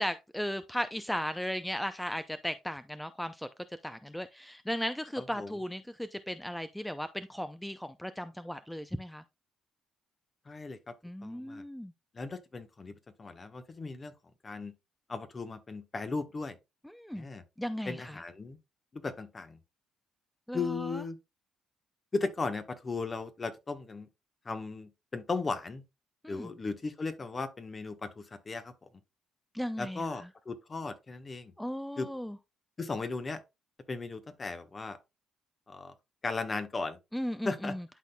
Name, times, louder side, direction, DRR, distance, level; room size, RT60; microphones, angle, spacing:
voice 1, 0.0-3.5 3.8-9.2 11.0-11.9 16.8-17.3 17.6-18.2 20.5-21.0 26.2-26.5 29.5-30.3 31.6-32.4 37.1-37.8, equal, 5° left, 0.5 m, -36 dB
voice 2, 5.2-5.6 10.5-10.9 11.2-11.6 12.1-14.1 14.4-14.7 15.1-16.6 17.1-17.4 17.8-18.6 18.9-19.6 20.5-21.2 22.1-24.1 24.4-25.8 26.3-28.7 29.8-31.5 32.0-32.1 32.8-33.4 33.9-35.0 35.7-35.9 36.2-37.0 37.4-37.7, left 4 dB, 35° left, 1.2 m, -36 dB
11.5 x 4.2 x 2.3 m
supercardioid pair, 65°, 0 cm